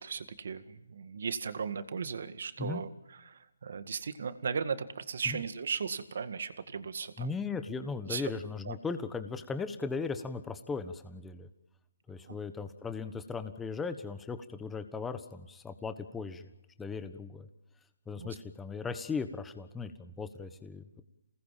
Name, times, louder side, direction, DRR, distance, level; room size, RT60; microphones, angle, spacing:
voice 1, 0.0-7.4 8.1-8.3 8.7-8.8 12.2-12.4 18.2-18.3, right 6 dB, 65° right, 11 dB, 1.9 m, -37 dB
voice 2, 7.2-11.5 12.1-16.5 16.8-17.5 18.1-21.0, left 4 dB, 10° left, 9 dB, 1.4 m, -37 dB
28.0 x 19.0 x 7.6 m, 0.97 s
hypercardioid pair, 155°, 0 cm